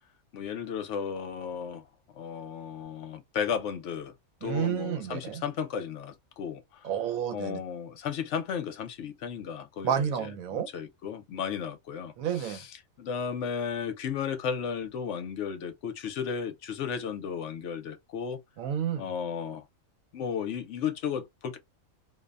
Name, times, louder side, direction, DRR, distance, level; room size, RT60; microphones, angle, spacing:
voice 1, 0.3-1.8 2.2-4.1 4.4-6.9 7.3-10.1 10.5-18.4 19.0-19.6 20.1-21.6, left 7 dB, 70° left, 0.9 m, -34 dB
voice 2, 4.4-5.4 6.8-7.6 9.8-10.7 12.2-12.6 18.6-19.1, right 9 dB, 85° right, 1.1 m, -30 dB
2.6 x 2.1 x 2.3 m
omnidirectional pair, 1.4 m